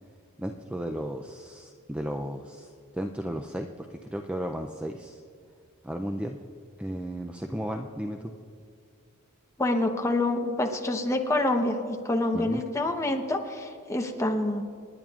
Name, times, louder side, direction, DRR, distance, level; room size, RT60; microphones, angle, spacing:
voice 1, 0.4-5.2 5.8-6.4 6.8-8.3 12.3-12.6, right 1 dB, 5° right, 3 dB, 0.4 m, -34 dB
voice 2, 9.6-14.6, left 2 dB, 15° left, 3 dB, 0.9 m, -27 dB
28.0 x 10.5 x 2.4 m, 2.3 s
head